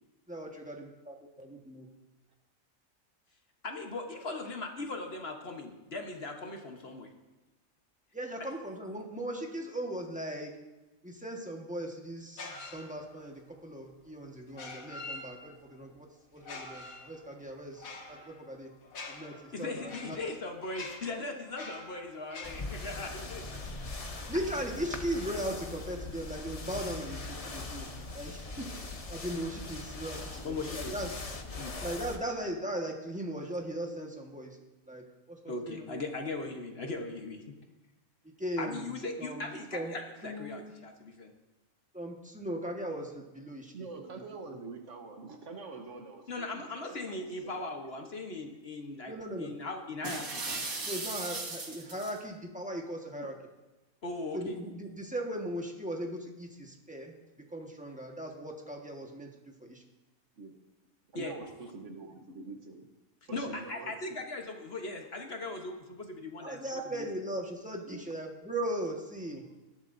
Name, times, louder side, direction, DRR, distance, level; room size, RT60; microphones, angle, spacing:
voice 1, 0.3-1.9 8.1-10.6 11.0-18.7 19.1-20.2 24.3-31.2 31.8-34.6 34.9-35.4 35.7-36.1 38.2-39.9 40.2-40.6 41.9-43.7 44.5-44.6 49.1-49.5 50.0-50.2 50.8-53.3 54.3-59.8 66.4-69.5, right 1 dB, 5° right, 0 dB, 1.3 m, -38 dB
voice 2, 3.6-7.1 19.5-24.4 30.4-30.9 31.6-31.7 35.5-37.6 38.6-41.3 46.3-50.4 54.0-54.6 61.1-61.3 63.3-66.6 66.9-67.1, left 3 dB, 50° left, 3 dB, 1.3 m, -39 dB
sound 1, 12.4-13.3 14.5-15.7 16.4-22.7, left 3 dB, 85° left, 1.7 m, -46 dB
sound 2, 22.4-32.2, left 3 dB, 30° left, 0.9 m, -41 dB
voice 3, 43.7-46.8 47.1-47.6 53.2-53.3 60.4-60.6 61.1-62.9 63.3-63.9 67.8-68.1, right 3 dB, 60° right, 5 dB, 1.3 m, -45 dB
sound 3, 50.0-52.2, right 3 dB, 85° right, 2.1 m, -37 dB
18.0 x 11.5 x 2.6 m, 1.1 s
omnidirectional pair, 1.4 m